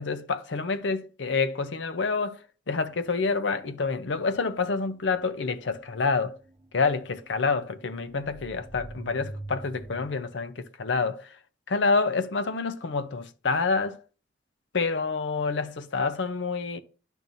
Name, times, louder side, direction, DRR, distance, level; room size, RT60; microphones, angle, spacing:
voice 1, 0.0-6.4 6.7-11.4 11.7-14.0 14.7-16.8, left 4 dB, 85° left, 0.7 m, -28 dB
sound 1, 2.9-10.2, right 1 dB, 15° right, 0.8 m, -44 dB
9.1 x 5.5 x 2.6 m
head